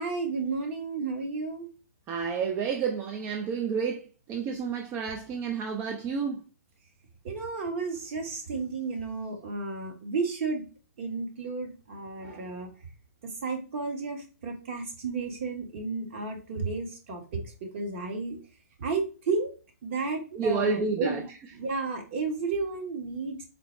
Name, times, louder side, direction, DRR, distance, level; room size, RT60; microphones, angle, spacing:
voice 1, 0.0-1.7 7.2-10.6 11.0-12.7 13.2-17.4 17.7-18.4 18.8-19.5 19.8-21.2 21.5-23.4, right 4 dB, 45° right, 1.2 m, -32 dB
voice 2, 2.1-6.4 20.3-21.2, right 5 dB, 20° right, 0.3 m, -30 dB
3.9 x 2.0 x 4.3 m
hypercardioid pair, 140°, 9 cm